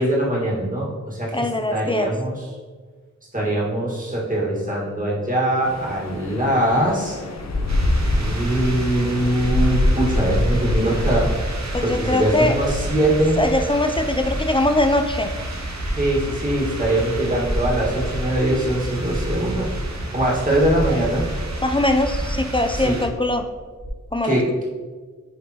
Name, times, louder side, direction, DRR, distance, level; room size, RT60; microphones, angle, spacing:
voice 1, 0.0-2.4 3.3-7.2 8.2-11.3 11.8-13.4 15.9-19.7 20.1-21.3 22.7-23.0 24.2-24.5, right 1 dB, 25° right, -4 dB, 1.7 m, -22 dB
voice 2, 1.3-2.1 11.7-12.6 13.4-15.3 20.9-21.0 21.6-23.4 24.1-24.4, left 1 dB, 15° left, 5 dB, 0.3 m, -21 dB
sound 1, 5.6-11.4, left 1 dB, 55° left, 0.9 m, -24 dB
sound 2, 7.7-23.1, right 1 dB, 60° right, 0.8 m, -30 dB
sound 3, 11.0-23.9, equal, ahead, 1.5 m, -32 dB
10.0 x 3.6 x 2.9 m, 1.5 s
wide cardioid pair, 85°, 31 cm